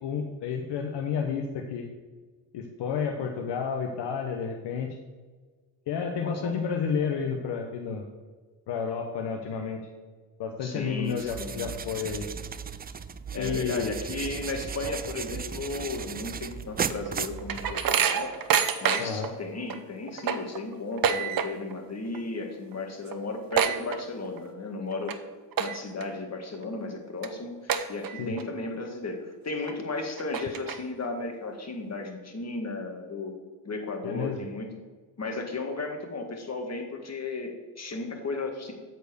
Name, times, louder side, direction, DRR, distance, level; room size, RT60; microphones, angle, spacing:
voice 1, 0.0-1.8 2.5-4.9 5.9-8.0 8.7-9.8 10.4-12.3 13.4-13.9 19.0-19.3 28.2-28.3 34.0-34.4, left 6 dB, 75° left, 2 dB, 0.9 m, -31 dB
voice 2, 6.2-6.6 10.6-11.7 13.3-18.4 18.8-25.2 25.6-33.3 33.7-34.7 35.2-38.7, left 3 dB, 40° left, 3 dB, 1.8 m, -35 dB
sound 1, 11.1-18.1, right 6 dB, 25° right, 0.3 m, -36 dB
sound 2, 16.9-19.3 19.7-19.8 20.1-21.8 22.1-22.4 22.7-22.8 23.1-24.5 24.9-25.1 25.5-26.0 26.5-26.6 27.2-27.3 27.7-28.4 28.8-28.9 29.7-29.8 30.2-31.1, right 8 dB, 55° right, 0.8 m, -27 dB
8.1 x 4.6 x 6.4 m, 1.4 s
cardioid pair, 65°, 42 cm